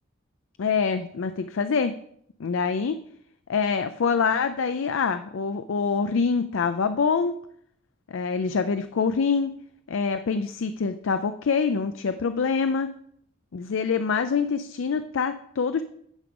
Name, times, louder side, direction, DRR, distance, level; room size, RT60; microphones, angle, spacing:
voice 1, 0.6-1.9 2.4-3.0 3.5-7.3 8.1-9.5 9.9-12.9 13.5-15.8, left 5 dB, 75° left, 10 dB, 0.4 m, -25 dB
9.7 x 5.0 x 5.3 m, 0.69 s
head